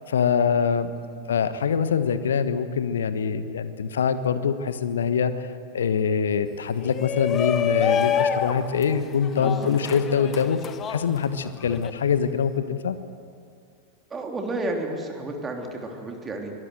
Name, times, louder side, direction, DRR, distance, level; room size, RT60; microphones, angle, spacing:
voice 1, 0.1-0.9 1.3-10.6 10.9-13.0, left 6 dB, 65° left, 12 dB, 1.3 m, -24 dB
voice 2, 0.8-1.3 9.4-9.8 14.1-16.5, right 2 dB, 20° right, 2 dB, 3.3 m, -32 dB
Shout, 6.8-11.9, left 8 dB, 25° left, 1.3 m, -27 dB
24.0 x 19.0 x 7.9 m, 2.3 s
figure-of-eight pair, 90°, 0 cm